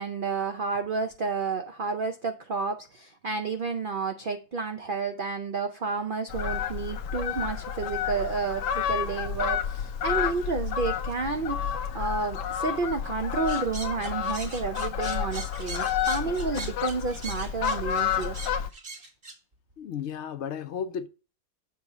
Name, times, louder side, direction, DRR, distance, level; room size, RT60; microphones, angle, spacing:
voice 1, 0.0-18.4, right 4 dB, 70° right, 0.5 m, -31 dB
Fowl, 6.3-18.7, left 9 dB, 90° left, 1.3 m, -30 dB
sound 1, 13.5-19.4, right 3 dB, 35° right, 1.4 m, -41 dB
voice 2, 19.8-21.1, left 7 dB, 65° left, 0.7 m, -33 dB
7.3 x 4.2 x 5.9 m
omnidirectional pair, 1.7 m